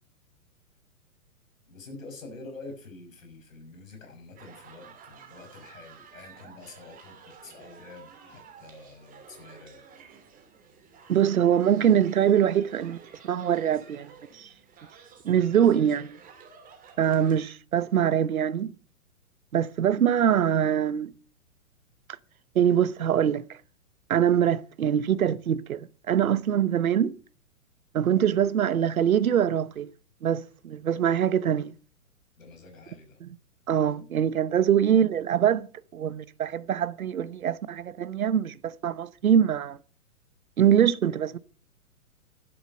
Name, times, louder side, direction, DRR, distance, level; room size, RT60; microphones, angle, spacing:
voice 1, 1.7-9.8 32.4-33.2 34.9-35.1, left 3 dB, 65° left, 6.2 m, -47 dB
sound 1, 4.4-17.4, right 6 dB, 20° right, 3.1 m, -52 dB
voice 2, 11.1-13.0 13.2-14.5 15.2-16.2 17.0-18.7 19.5-21.1 22.5-23.6 24.1-27.1 27.9-29.9 30.2-31.7 33.2-33.3 33.7-39.8 40.6-41.4, right 9 dB, 70° right, 0.9 m, -23 dB
11.5 x 11.0 x 5.4 m
figure-of-eight pair, 120°, 44 cm